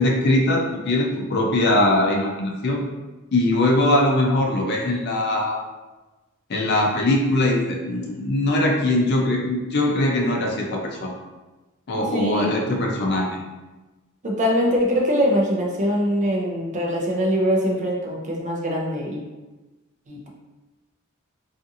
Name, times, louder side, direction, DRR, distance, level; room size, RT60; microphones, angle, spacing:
voice 1, 0.0-2.8 3.3-5.6 6.5-11.1 11.9-13.4, left 1 dB, 50° left, 0 dB, 0.4 m, -21 dB
voice 2, 12.1-12.5 14.2-19.2 20.1-20.3, equal, 35° right, -1 dB, 0.5 m, -22 dB
2.6 x 2.4 x 2.6 m, 1.1 s
head